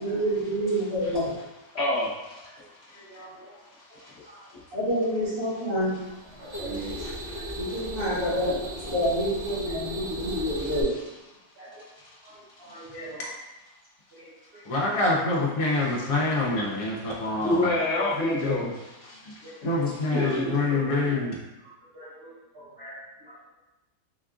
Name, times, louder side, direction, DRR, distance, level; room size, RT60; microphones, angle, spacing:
voice 1, 0.0-1.3 4.7-6.0 7.6-8.6 8.9-10.9, equal, 80° right, -7 dB, 1.6 m, -27 dB
voice 2, 1.7-3.2 3.7-4.7 6.3-7.6 12.0-12.1 12.6-12.9 15.8-16.0 16.6-16.7 16.9-17.1 17.4-20.4, left 1 dB, 50° left, -10 dB, 0.9 m, -31 dB
voice 3, 2.9-3.5 4.3-4.4 6.4-7.1 7.3-7.5 7.7-8.2 10.2-10.3 11.6-11.9 12.2-12.3 12.6-13.3 14.1-14.6 17.3-17.4 19.4-19.6 20.1-21.2 21.9-23.0 23.3-23.4, right 1 dB, 50° right, -10 dB, 1.0 m, -39 dB
sound 1, 6.0-10.8, equal, 30° right, 0.5 m, -36 dB
voice 4, 14.7-17.7 18.4-18.6 19.6-21.3, left 2 dB, 70° left, -4 dB, 1.2 m, -26 dB
4.3 x 2.3 x 2.4 m, 1.0 s
omnidirectional pair, 1.6 m